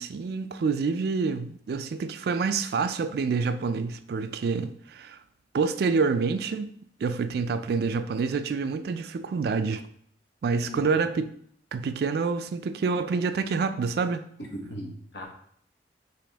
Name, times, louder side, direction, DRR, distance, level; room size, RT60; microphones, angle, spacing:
voice 1, 0.0-5.2 5.5-6.7 7.0-9.8 10.4-11.3 11.7-14.2, right 4 dB, 60° right, 0.3 m, -27 dB
voice 2, 14.5-15.3, equal, 70° left, 1.1 m, -37 dB
5.0 x 2.9 x 3.4 m
head